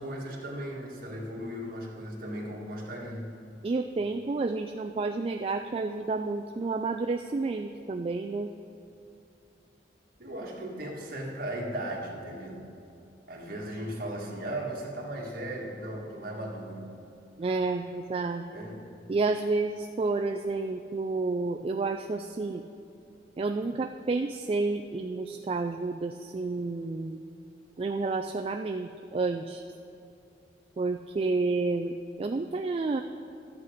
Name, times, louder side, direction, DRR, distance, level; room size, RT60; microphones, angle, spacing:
voice 1, 0.0-3.3 10.2-12.7 13.3-16.9 17.4-17.5 18.5-18.8, right 1 dB, 50° right, -2 dB, 1.8 m, -37 dB
voice 2, 3.6-8.5 17.4-18.4 19.1-22.6 23.4-27.3 27.8-29.6 30.8-33.0, right 3 dB, 30° right, 5 dB, 0.3 m, -30 dB
12.5 x 8.3 x 5.0 m, 2.7 s
head